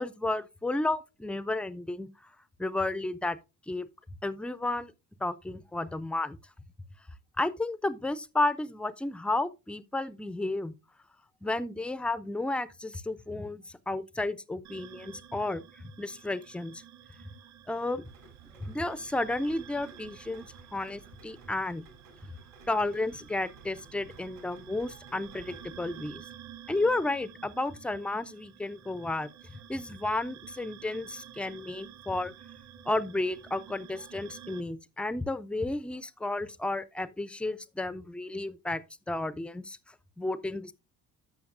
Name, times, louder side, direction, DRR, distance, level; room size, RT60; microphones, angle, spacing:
voice 1, 0.0-2.1 2.6-3.4 3.7-3.9 4.2-4.9 5.2-6.4 7.4-10.7 11.4-16.8 17.7-18.1 18.6-21.8 22.7-26.2 26.7-29.3 29.7-32.3 32.9-38.8 39.1-39.8 40.2-40.7, left 2 dB, 5° left, 0.3 m, -32 dB
sound 1, 14.6-34.6, right 10 dB, 60° right, 1.6 m, -51 dB
Rain, 18.0-26.1, right 5 dB, 80° right, 3.2 m, -54 dB
13.0 x 5.7 x 2.5 m
hypercardioid pair, 55°, 46 cm